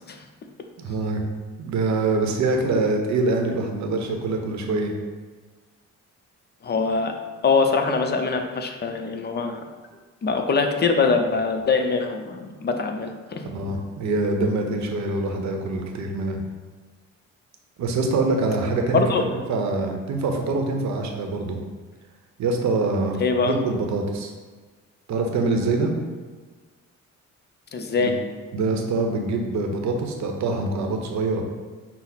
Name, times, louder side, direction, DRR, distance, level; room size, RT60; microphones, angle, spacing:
voice 1, 0.8-1.2 1.6-4.9 13.5-16.4 17.8-21.6 22.4-24.3 25.1-25.9 28.0-28.1 28.5-31.4, right 3 dB, 65° right, 3 dB, 0.7 m, -24 dB
voice 2, 6.6-7.1 7.4-9.6 10.2-13.4 18.9-19.2 23.2-23.5 27.7-28.1, left 4 dB, 35° left, 5 dB, 0.5 m, -23 dB
5.6 x 2.0 x 4.0 m, 1.4 s
cardioid pair, 90°, 30 cm